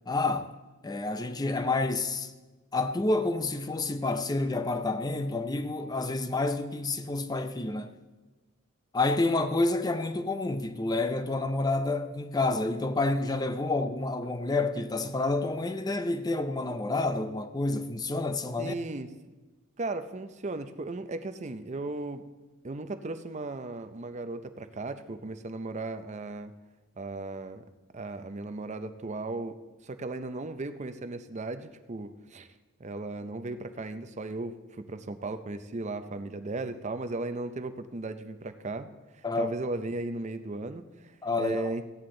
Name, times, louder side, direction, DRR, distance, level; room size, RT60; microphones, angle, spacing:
voice 1, 0.1-0.5 0.8-2.3 2.7-7.9 8.9-18.7 39.2-39.5 41.2-41.7, left 2 dB, 20° left, 0.5 m, -29 dB
voice 2, 18.6-19.1 19.8-22.3 22.6-26.5 27.0-27.6 27.9-32.5 32.8-38.9 39.1-41.8, right 2 dB, 30° right, 0.5 m, -36 dB
15.5 x 9.5 x 3.8 m
head